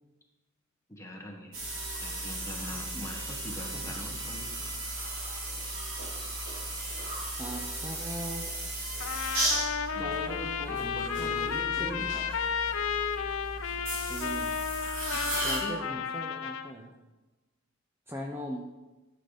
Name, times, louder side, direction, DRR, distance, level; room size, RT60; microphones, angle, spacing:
voice 1, 0.9-1.6 1.9-4.7 9.9-12.2 15.3-15.8, equal, 15° left, 0 dB, 1.5 m, -42 dB
sound 1, 1.5-15.6, right 1 dB, 70° right, 3.3 m, -36 dB
voice 2, 2.7-3.1 7.4-8.5 10.0-12.2 14.1-14.7 15.1-17.0 18.1-18.6, equal, 10° right, 1 dB, 0.7 m, -40 dB
Trumpet, 9.0-16.7, left 7 dB, 75° left, 0.6 m, -32 dB
13.0 x 6.7 x 4.1 m, 1.1 s
head